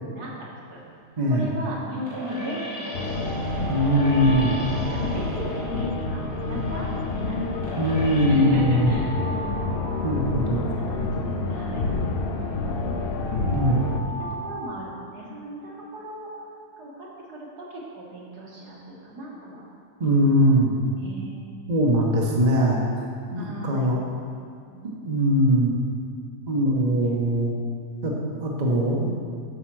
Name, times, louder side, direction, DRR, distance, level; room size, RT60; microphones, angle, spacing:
voice 1, 0.1-0.8 1.3-3.3 4.4-7.9 8.3-9.2 10.0-10.1 10.5-11.9 13.8-16.3 16.8-19.7 20.2-20.6 21.0-21.4 23.3-23.9 24.7-25.1, right 1 dB, 70° right, -4 dB, 2.0 m, -37 dB
sound 1, 0.7-8.3, equal, 20° left, 2.3 m, -39 dB
voice 2, 1.2-1.5 3.7-4.6 7.8-8.9 10.0-10.7 13.5-13.9 20.0-20.7 21.7-22.8 23.3-24.0 25.0-25.7 26.5-27.6 28.0-29.1, equal, 30° right, -2 dB, 1.0 m, -21 dB
Alarm, 2.7-6.0 7.2-11.0 12.2-15.5, right 1 dB, 55° right, 1.7 m, -39 dB
sound 2, 2.9-14.0, left 3 dB, 75° left, 0.5 m, -28 dB
8.1 x 5.8 x 6.1 m, 2.3 s
omnidirectional pair, 1.8 m